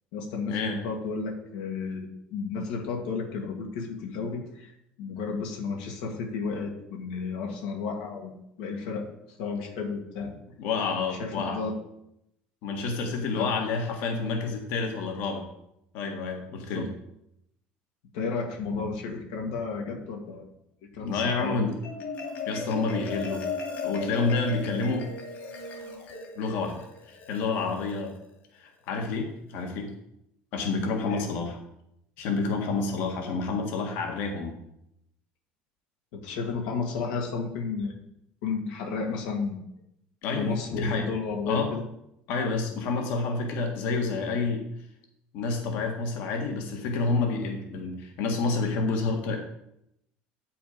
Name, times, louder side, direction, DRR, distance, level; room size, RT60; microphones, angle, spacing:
voice 1, 0.1-8.3 8.6-9.1 9.4-10.3 11.1-11.7 13.3-13.5 16.7-16.9 18.1-20.4 20.9-21.7 31.0-31.3 36.1-38.0 38.4-39.6 40.4-41.8, left 4 dB, 90° left, 1 dB, 2.0 m, -32 dB
voice 2, 10.6-11.6 12.6-15.4 15.9-16.9 21.0-21.7 22.5-23.4 23.8-25.1 26.4-28.1 28.5-29.9 30.5-31.6 32.2-34.5 40.2-41.0 41.5-41.7 42.3-44.6 45.3-49.4, left 4 dB, 75° left, 3 dB, 1.8 m, -29 dB
Marimba xylophone, 21.6-28.2, left 4 dB, 60° left, 2.6 m, -36 dB
8.5 x 6.9 x 5.1 m, 0.80 s
cardioid pair, 115°, 4 cm